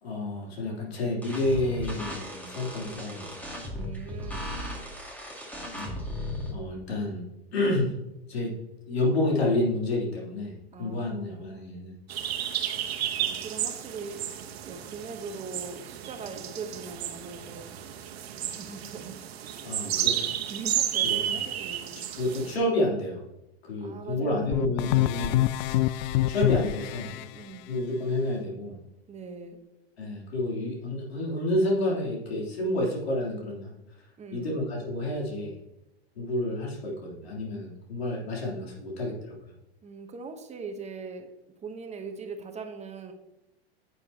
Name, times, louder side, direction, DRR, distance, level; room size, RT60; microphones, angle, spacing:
voice 1, 0.0-3.4 5.7-6.0 6.5-7.2 7.5-8.0 8.3-8.5 8.8-10.5 10.8-11.9 19.6-20.3 21.0-21.4 22.1-23.2 23.6-25.4 26.3-27.1 27.7-28.8 30.0-33.7 34.3-35.6 36.2-39.4, left 1 dB, 85° left, -3 dB, 3.4 m, -29 dB
sound 1, 1.2-6.5, left 1 dB, 5° left, 2.0 m, -36 dB
voice 2, 3.7-4.4 10.7-11.7 13.2-14.2 14.6-17.7 18.4-22.1 23.8-24.8 27.2-27.6 29.1-29.6 34.2-34.6 39.8-41.3 41.6-43.1, right 4 dB, 20° right, 5 dB, 1.1 m, -41 dB
sound 2, 12.1-22.6, right 10 dB, 75° right, 1.1 m, -32 dB
sound 3, 24.5-27.2, left 15 dB, 50° left, 0.4 m, -25 dB
9.7 x 8.2 x 2.9 m, 0.92 s
hypercardioid pair, 110°, 31 cm